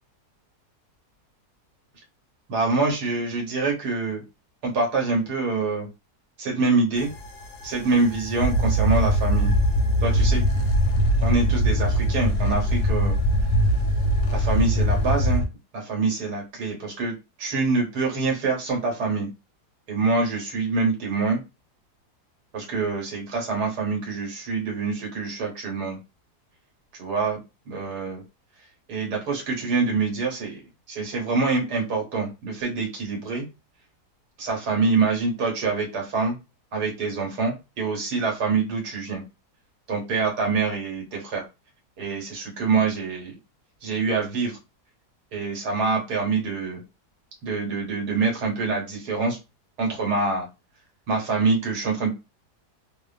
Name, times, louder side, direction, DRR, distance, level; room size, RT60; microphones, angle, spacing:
voice 1, 2.5-4.2 4.6-5.9 6.4-7.1 7.6-9.5 10.0-10.6 11.2-13.2 14.3-15.4 15.7-19.3 19.9-21.4 22.5-26.0 27.0-27.4 27.7-28.2 28.9-30.6 30.9-33.4 34.4-36.4 36.7-39.2 39.9-41.4 42.0-43.3 43.8-44.6 45.3-46.8 47.4-49.4 49.8-50.5 51.1-52.1, right 4 dB, 80° right, 0 dB, 1.5 m, -25 dB
sound 1, 7.0-15.4, equal, 65° left, 0.8 m, -22 dB
2.9 x 2.2 x 2.4 m, 0.26 s
omnidirectional pair, 1.7 m